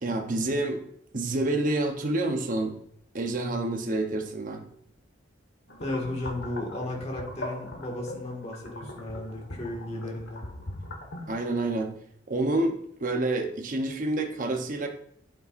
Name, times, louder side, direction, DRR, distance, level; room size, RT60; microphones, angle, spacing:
voice 1, 0.0-0.8 1.1-2.8 3.1-4.6 11.3-11.9 12.3-14.9, right 2 dB, 45° right, 4 dB, 0.9 m, -28 dB
sound 1, 5.7-11.5, left 1 dB, 75° left, 1.5 m, -40 dB
voice 2, 5.8-10.4, left 1 dB, 35° left, 0 dB, 1.8 m, -34 dB
9.1 x 8.3 x 2.5 m, 0.68 s
head